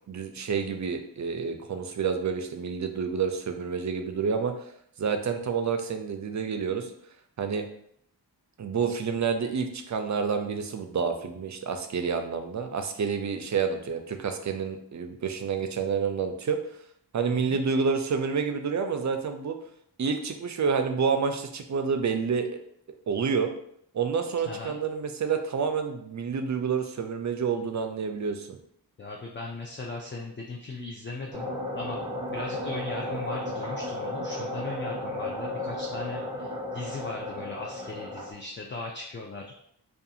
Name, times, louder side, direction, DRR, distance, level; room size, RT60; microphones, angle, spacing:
voice 1, 0.1-4.5 5.0-6.9 7.4-7.7 8.6-16.6 17.1-19.6 20.0-22.5 23.1-23.5 23.9-28.6, right 6 dB, 45° right, 6 dB, 0.4 m, -28 dB
voice 2, 17.3-17.6 24.5-24.8 29.0-32.0 32.3-39.5, left 3 dB, 30° left, -1 dB, 0.4 m, -38 dB
sound 1, 31.3-38.3, left 1 dB, 10° right, 0.8 m, -34 dB
2.4 x 2.4 x 2.7 m, 0.69 s
cardioid pair, 40°, 42 cm